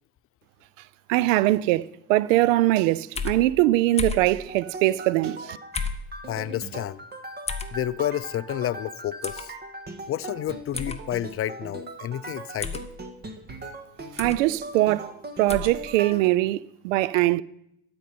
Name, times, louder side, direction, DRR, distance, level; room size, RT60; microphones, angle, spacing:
voice 1, 1.1-5.6 14.1-15.1 15.4-17.4, right 16 dB, 85° right, 0.5 m, -22 dB
sound 1, 3.2-3.4 4.0-4.3 5.7-6.1 7.5-7.7 9.2-9.4 10.7-11.0 12.6-12.9 14.2-14.4 15.5-15.7, left 5 dB, 15° left, 1.0 m, -31 dB
sound 2, 4.4-16.3, right 2 dB, 25° right, 1.6 m, -39 dB
voice 2, 6.3-7.0 7.7-9.5 10.1-12.9, left 12 dB, 35° left, 0.5 m, -30 dB
13.0 x 5.4 x 9.2 m
supercardioid pair, 90°, 37 cm